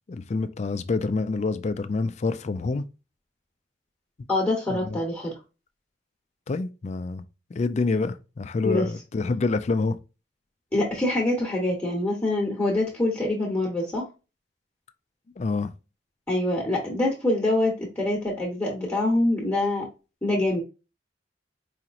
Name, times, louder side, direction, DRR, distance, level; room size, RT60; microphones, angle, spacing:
voice 1, 0.1-2.8 4.7-4.8 6.5-7.2 7.5-10.0 15.4-15.7, left 3 dB, 40° left, 0.4 m, -27 dB
voice 2, 4.3-5.3 8.6-8.9 10.7-14.1 16.3-19.8 20.2-20.6, left 1 dB, 10° left, 1.0 m, -25 dB
4.8 x 2.9 x 2.5 m
head